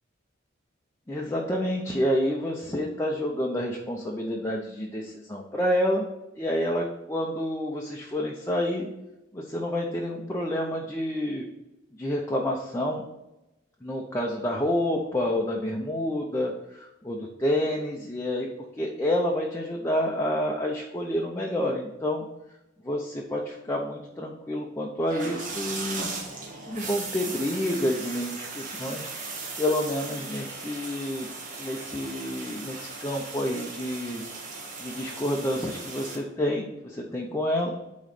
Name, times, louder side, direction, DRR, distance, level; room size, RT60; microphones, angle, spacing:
voice 1, 1.1-6.0 6.4-8.9 9.3-11.4 12.0-13.0 13.8-18.5 18.8-22.3 22.8-26.1 26.7-29.1 29.6-31.3 31.6-34.2 34.8-37.7, left 1 dB, 15° left, -1 dB, 0.7 m, -28 dB
sound 1, 25.0-36.2, right 3 dB, 45° right, 1.5 m, -37 dB
8.9 x 3.1 x 6.6 m, 0.95 s
head